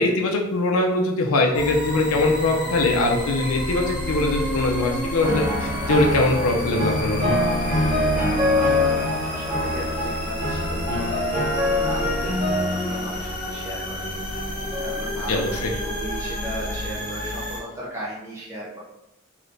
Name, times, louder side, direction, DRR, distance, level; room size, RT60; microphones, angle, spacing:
voice 1, 0.0-7.4 15.3-15.7, left 2 dB, 85° left, 1 dB, 0.5 m, -22 dB
sound 1, 1.5-17.6, left 1 dB, 40° left, 1.0 m, -30 dB
sound 2, 5.2-13.8 14.6-15.1, left 1 dB, 35° right, 1.2 m, -25 dB
voice 2, 7.8-11.2 11.7-14.0 14.8-18.8, right 1 dB, 15° right, -7 dB, 0.6 m, -36 dB
3.2 x 2.8 x 2.6 m, 0.86 s
head